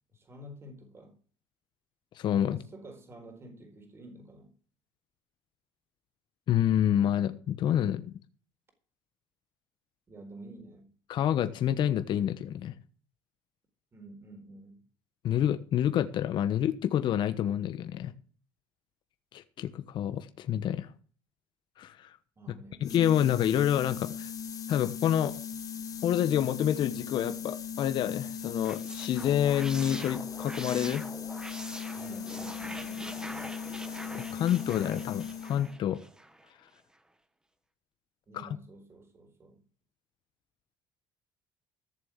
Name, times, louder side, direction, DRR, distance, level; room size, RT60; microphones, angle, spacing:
voice 1, 0.1-1.2 2.5-4.5 10.1-10.9 13.9-14.8 22.4-22.8 31.9-33.2 38.3-39.6, right 1 dB, 25° right, 4.3 m, -49 dB
voice 2, 2.1-2.6 6.5-8.0 11.1-12.7 15.2-18.1 19.3-20.9 21.8-22.1 22.8-24.3 24.7-25.3 26.0-31.0 34.1-36.0 38.3-38.5, left 10 dB, 55° left, 1.1 m, -28 dB
sound 1, 22.8-35.8, left 7 dB, 40° left, 1.4 m, -39 dB
sound 2, 28.4-36.5, right 1 dB, 10° right, 1.4 m, -44 dB
14.5 x 7.1 x 7.3 m
cardioid pair, 110°, 9 cm